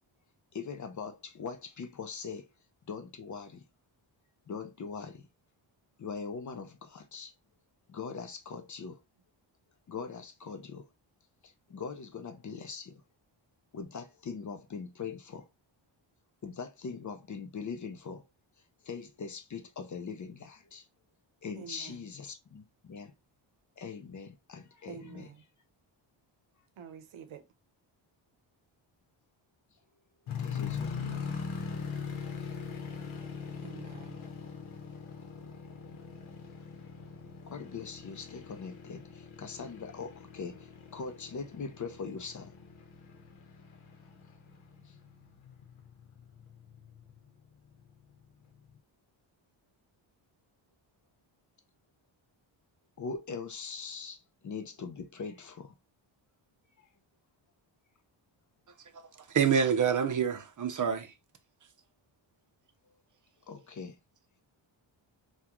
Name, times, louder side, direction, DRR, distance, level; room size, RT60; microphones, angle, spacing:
voice 1, 0.5-2.5 2.9-3.6 4.5-5.2 6.0-7.3 7.9-9.0 9.9-10.9 11.4-13.0 13.7-15.5 16.4-18.2 18.8-20.9 21.4-23.1 23.8-25.3 30.4-31.0 37.5-42.5 44.9-45.0 53.0-55.7 56.8-56.9 63.5-64.0, left 5 dB, 40° left, 0.6 m, -41 dB
voice 2, 21.6-22.1 24.9-25.4 26.8-27.5 33.6-34.2, right 8 dB, 75° right, 0.7 m, -48 dB
sound 1, 30.3-47.3 47.9-48.0 48.5-48.8, left 6 dB, 80° left, 0.9 m, -42 dB
voice 3, 59.3-61.1, right 7 dB, 40° right, 0.6 m, -27 dB
3.6 x 2.4 x 2.9 m
wide cardioid pair, 120°, 48 cm